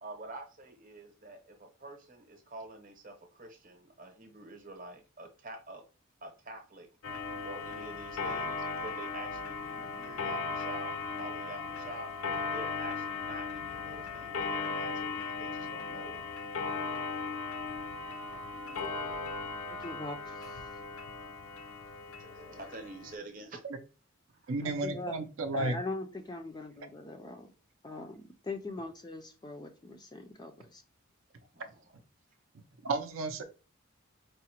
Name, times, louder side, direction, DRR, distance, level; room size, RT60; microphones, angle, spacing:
voice 1, 0.0-5.8 6.2-6.9 7.4-12.1 12.5-16.2 22.2-23.6 24.4-24.5 31.5-31.7, right 1 dB, 40° right, 0.8 m, -47 dB
Clock, 7.0-23.2, left 4 dB, 80° left, 0.6 m, -37 dB
voice 2, 19.7-20.6 24.6-25.2 25.5-27.5 27.8-30.8, left 2 dB, 20° left, 0.4 m, -41 dB
voice 3, 24.5-25.7 32.8-33.4, right 2 dB, 65° right, 0.5 m, -32 dB
4.8 x 2.1 x 2.8 m
head